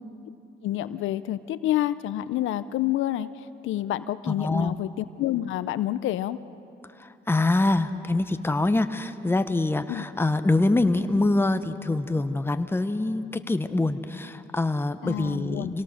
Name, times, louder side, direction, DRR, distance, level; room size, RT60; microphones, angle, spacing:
voice 1, 0.6-3.3 3.6-6.4 9.9-10.0 15.0-15.8, left 13 dB, 80° left, 14 dB, 0.6 m, -28 dB
voice 2, 4.3-4.7 7.0-15.8, left 2 dB, 10° left, 10 dB, 0.9 m, -25 dB
26.0 x 18.0 x 6.5 m, 2.8 s
cardioid pair, 90°, 20 cm